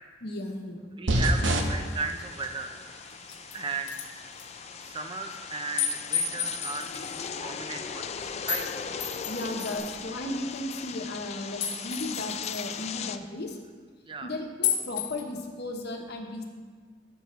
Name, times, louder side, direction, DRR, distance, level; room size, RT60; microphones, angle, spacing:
voice 1, 0.2-0.8 9.3-13.6 14.2-16.4, left 1 dB, 60° left, 3 dB, 1.1 m, -35 dB
voice 2, 1.0-2.8 3.5-4.0 4.8-8.8 14.1-14.3, right 4 dB, 30° right, 6 dB, 0.5 m, -36 dB
sound 1, 1.1-9.8, right 1 dB, 85° right, 0.9 m, -34 dB
sound 2, 1.4-13.2, left 7 dB, 35° left, 0.3 m, -39 dB
sound 3, 2.4-2.5 3.1-3.5 3.9-4.1 4.4-4.5 5.8-7.2 8.5-8.7 9.0-9.9 11.6-12.7 14.6-15.2, left 7 dB, 90° left, 1.3 m, -31 dB
13.5 x 6.5 x 3.1 m, 1.5 s
head